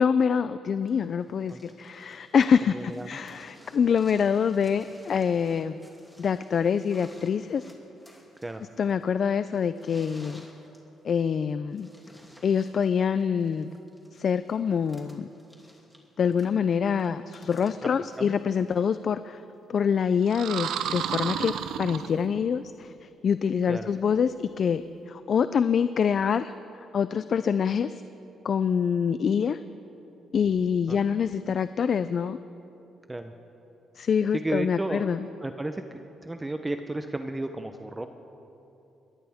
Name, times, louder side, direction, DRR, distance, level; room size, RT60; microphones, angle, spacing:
voice 1, 0.0-5.8 6.2-7.7 8.8-10.5 11.0-11.9 12.4-13.7 14.1-15.3 16.2-19.4 19.7-26.5 26.9-28.0 28.4-29.6 30.3-32.4 34.0-35.3, left 7 dB, 55° left, 13 dB, 0.4 m, -25 dB
sound 1, 0.9-19.0 20.0-20.1, equal, 5° left, 2.7 m, -55 dB
voice 2, 2.7-3.1 3.4-3.8 8.4-8.6 17.8-17.9 18.2-18.3 23.7-23.9 30.9-31.0 33.1-33.3 34.3-35.1 35.4-38.1, right 2 dB, 15° right, 7 dB, 0.7 m, -33 dB
sound 2, 20.3-22.6, right 9 dB, 80° right, 0.6 m, -32 dB
22.5 x 18.0 x 3.6 m, 2.9 s
cardioid pair, 90°, 0 cm